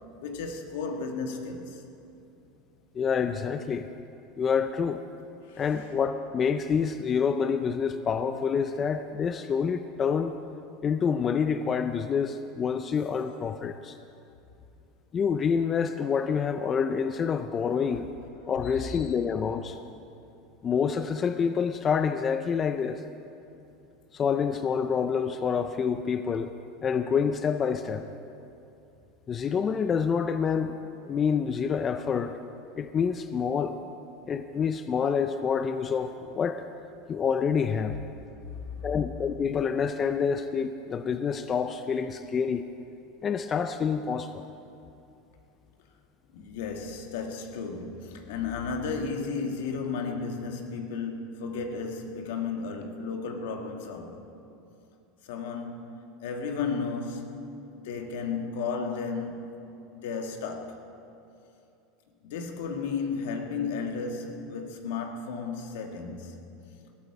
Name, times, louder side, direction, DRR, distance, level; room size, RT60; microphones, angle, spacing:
voice 1, 0.2-1.8 5.5-5.6 18.6-19.1 38.5-38.9 46.3-54.2 55.2-55.9 56.2-57.3 57.8-59.6 59.9-60.8 62.2-66.4, left 5 dB, 80° left, 1.8 m, -34 dB
voice 2, 2.9-3.9 4.4-5.0 5.6-10.3 10.8-14.0 15.1-18.1 18.5-19.8 20.6-23.0 24.1-26.5 26.8-28.1 29.3-30.8 31.1-32.4 32.8-33.8 34.3-36.6 37.1-38.0 38.8-42.6 43.2-44.5, left 6 dB, 25° left, 0.5 m, -27 dB
20.0 x 13.0 x 4.8 m
supercardioid pair, 135°, 0 cm